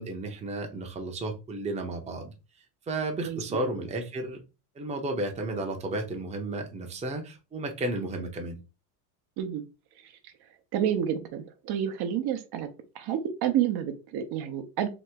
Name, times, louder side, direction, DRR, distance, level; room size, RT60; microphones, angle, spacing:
voice 1, 0.0-2.3 2.9-4.4 4.8-8.6, right 2 dB, 15° right, 3 dB, 0.6 m, -33 dB
voice 2, 10.7-12.7 13.0-14.9, right 9 dB, 55° right, 8 dB, 0.7 m, -29 dB
2.9 x 2.0 x 3.4 m, 0.30 s
supercardioid pair, 105°, 45 cm